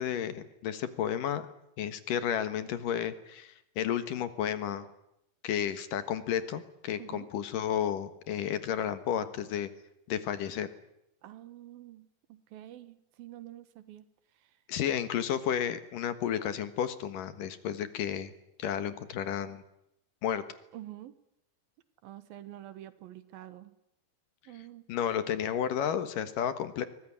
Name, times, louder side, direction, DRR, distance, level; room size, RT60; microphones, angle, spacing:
voice 1, 0.0-1.5 1.8-4.9 5.4-9.7 10.1-10.7 14.7-18.3 18.6-19.6 20.2-20.4 24.9-26.9, left 9 dB, 65° left, 12 dB, 2.9 m, -32 dB
voice 2, 7.0-7.3 11.2-14.0 14.3-14.6 20.7-21.2 22.0-23.7 24.5-24.8, right 13 dB, 75° right, 14 dB, 3.0 m, -47 dB
23.5 x 19.5 x 10.0 m, 0.81 s
omnidirectional pair, 4.3 m